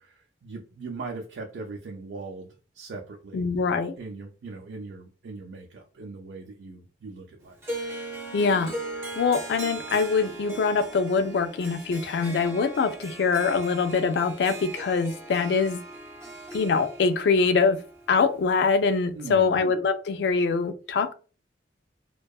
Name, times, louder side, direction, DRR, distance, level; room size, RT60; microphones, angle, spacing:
voice 1, 0.0-3.4 4.0-7.6 19.1-19.6, right 3 dB, 85° right, 0.4 m, -40 dB
voice 2, 3.3-4.0 8.3-8.7 9.2-15.8 16.5-17.8 18.1-21.1, left 5 dB, 70° left, 0.3 m, -24 dB
Harp, 7.6-18.9, right 2 dB, 15° right, 0.3 m, -39 dB
2.6 x 2.2 x 2.2 m
head